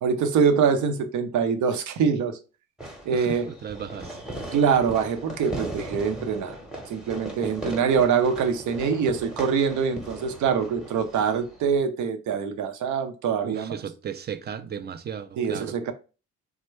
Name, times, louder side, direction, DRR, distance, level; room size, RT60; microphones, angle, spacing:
voice 1, 0.0-2.4 3.1-3.5 4.5-6.6 6.9-13.7 15.4-15.9, right 6 dB, 75° right, 0.6 m, -24 dB
Fireworks, 2.8-11.8, right 1 dB, ahead, 0.8 m, -38 dB
voice 2, 3.1-4.2 13.4-15.8, right 8 dB, 35° right, 0.4 m, -35 dB
3.4 x 2.1 x 3.1 m
cardioid pair, 90°, 30 cm